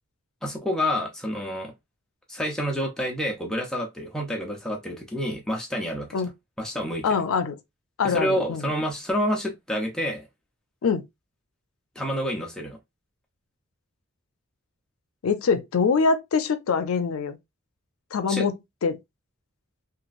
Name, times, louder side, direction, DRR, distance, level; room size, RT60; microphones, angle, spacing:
voice 1, 0.4-1.7 2.3-6.3 6.6-7.0 8.0-10.3 12.0-12.8 18.3-18.5, equal, 5° left, 0.6 m, -28 dB
voice 2, 7.0-7.6 8.0-8.6 10.8-11.1 15.2-17.4 18.1-19.0, left 5 dB, 85° left, 0.5 m, -24 dB
3.0 x 2.4 x 2.4 m
head